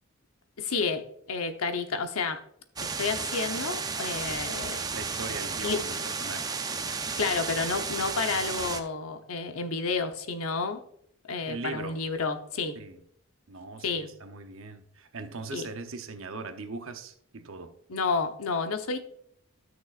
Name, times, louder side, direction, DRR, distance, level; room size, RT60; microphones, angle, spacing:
voice 1, 0.6-1.0 1.3-2.4 2.8-4.8 5.6-5.8 7.1-10.8 11.3-12.8 13.8-14.1 15.5-15.7 17.9-19.0, left 4 dB, 85° left, 0.9 m, -30 dB
sound 1, 2.8-8.8, right 5 dB, 15° right, 0.4 m, -33 dB
voice 2, 4.9-6.7 11.4-12.0 12.8-13.0 13.5-17.8, right 3 dB, 70° right, 0.8 m, -40 dB
13.0 x 6.2 x 2.5 m
head